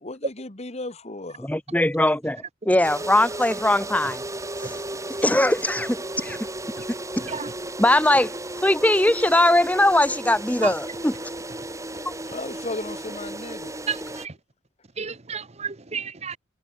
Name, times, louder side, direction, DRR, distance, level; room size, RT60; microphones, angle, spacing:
voice 1, 0.0-1.5 12.3-13.8, left 2 dB, 35° left, 1.7 m, -35 dB
voice 2, 1.4-4.2 5.2-6.4 7.2-7.3 7.8-8.3 8.6-11.1 12.0-12.1, left 1 dB, 10° left, 1.1 m, -20 dB
sound 1, 2.8-14.3, right 1 dB, 15° right, 7.2 m, -34 dB
voice 3, 13.9-14.3 15.0-16.4, right 6 dB, 35° right, 1.1 m, -32 dB
head